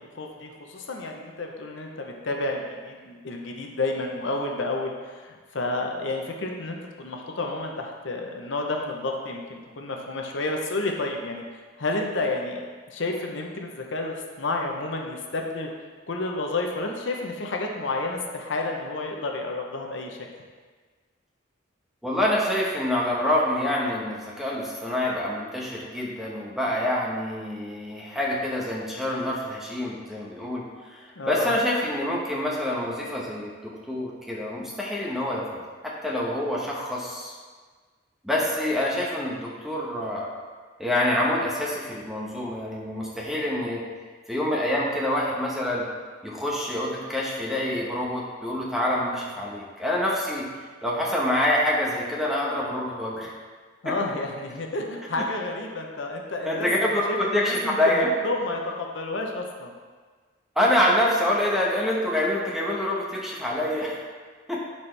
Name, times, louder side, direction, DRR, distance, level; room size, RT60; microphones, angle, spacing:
voice 1, 0.0-11.4 11.8-12.6 12.9-15.7 16.1-20.2 31.2-31.5 53.8-56.7 57.1-59.7, left 2 dB, 65° left, 2 dB, 0.8 m, -30 dB
voice 2, 22.0-35.5 35.8-37.3 38.2-40.3 40.8-43.8 44.3-45.8 46.2-53.3 55.2-55.3 56.4-57.0 57.3-58.1 60.6-64.0 64.5-64.6, left 1 dB, ahead, -4 dB, 1.1 m, -26 dB
11.5 x 4.3 x 3.3 m, 1.5 s
head